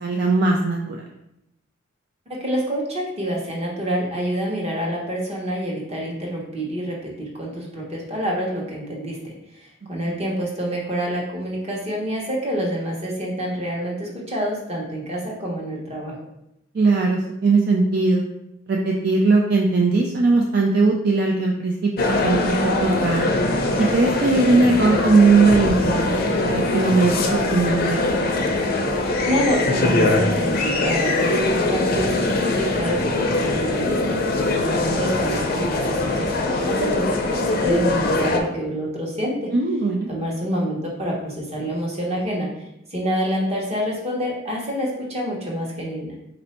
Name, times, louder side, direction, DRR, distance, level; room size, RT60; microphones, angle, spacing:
voice 1, 0.0-1.0 10.0-10.1 16.7-18.2 18.7-23.3 23.8-26.2 26.4-28.0 39.5-40.1, right 3 dB, 50° right, 0 dB, 0.4 m, -19 dB
voice 2, 2.3-16.2 29.2-34.2 34.7-39.5 40.1-42.5 42.9-46.1, equal, 30° right, -3 dB, 1.1 m, -27 dB
sound 1, 22.0-38.4, left 2 dB, 50° left, 0.5 m, -22 dB
4.2 x 2.6 x 4.2 m, 0.83 s
head